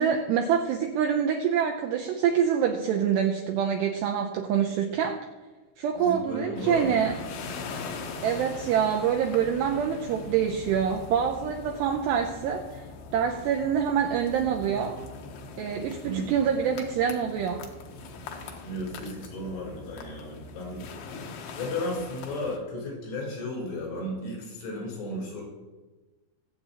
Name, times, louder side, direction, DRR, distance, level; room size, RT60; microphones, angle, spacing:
voice 1, 0.0-5.2 5.8-7.2 8.2-12.8 13.1-15.0 15.6-17.7, right 8 dB, 85° right, 3 dB, 2.4 m, -26 dB
voice 2, 6.0-7.3 16.0-16.3 18.6-20.9 21.6-25.4, left 1 dB, 85° left, -5 dB, 7.4 m, -34 dB
sound 1, 6.6-22.6, left 4 dB, 70° left, 2.6 m, -41 dB
23.0 x 8.2 x 2.9 m, 1.2 s
omnidirectional pair, 5.7 m